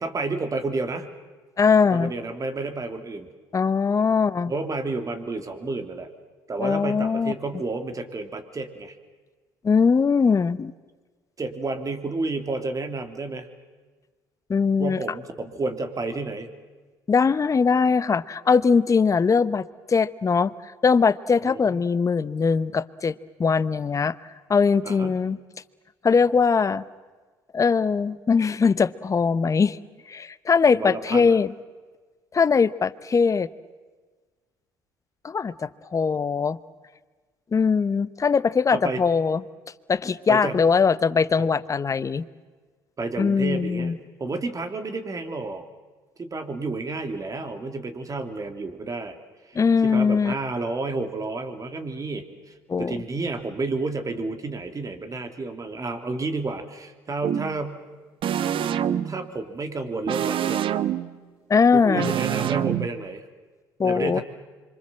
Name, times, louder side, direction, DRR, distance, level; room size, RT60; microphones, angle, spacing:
voice 1, 0.0-1.1 1.9-3.3 4.5-6.1 6.5-8.9 11.4-13.5 14.8-16.5 21.4-21.8 24.8-25.2 30.7-31.4 38.7-39.0 40.3-40.6 41.4-41.5 43.0-43.9 44.2-45.6 46.2-49.2 49.5-49.6 49.8-57.8 59.0-60.6 61.7-63.2 63.8-64.2, right 3 dB, 35° right, 6 dB, 3.2 m, -31 dB
voice 2, 1.6-2.1 3.5-4.5 6.6-7.3 9.6-10.7 14.5-15.0 17.1-20.5 20.8-23.1 23.4-24.1 24.5-25.4 26.0-26.8 27.5-29.8 30.1-31.5 32.3-33.5 35.2-36.6 37.5-39.4 39.9-42.3 43.2-44.0 49.5-50.3 52.7-52.9 61.5-62.1 63.8-64.2, left 5 dB, 30° left, 15 dB, 1.0 m, -21 dB
sound 1, 57.2-57.6 58.2-59.3 60.1-61.2 61.9-62.9, right 10 dB, 60° right, 1.1 m, -25 dB
26.5 x 24.5 x 7.6 m, 1.3 s
supercardioid pair, 65°, 10 cm